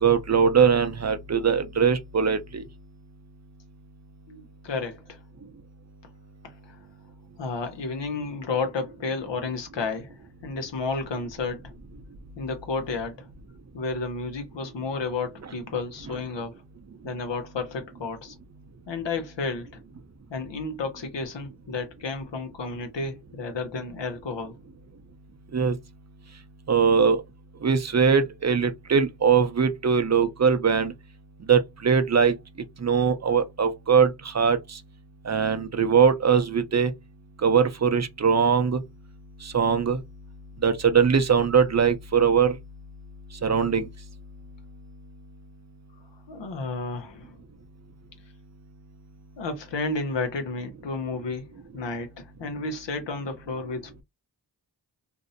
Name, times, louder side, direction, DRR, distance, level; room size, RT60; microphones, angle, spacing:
voice 1, 0.0-2.6 25.5-25.8 26.7-27.2 27.6-30.9 31.5-32.3 32.8-34.8 35.2-36.9 37.4-38.8 39.4-40.0 40.6-42.5 43.4-43.9, right 6 dB, 40° right, 0.5 m, -21 dB
voice 2, 4.3-5.2 6.6-6.8 7.4-11.6 12.4-13.3 13.7-16.6 17.0-18.3 18.9-19.8 20.3-24.5 46.3-47.4 49.4-54.0, left 3 dB, 85° left, 0.7 m, -32 dB
2.6 x 2.0 x 2.5 m
cardioid pair, 45°, 42 cm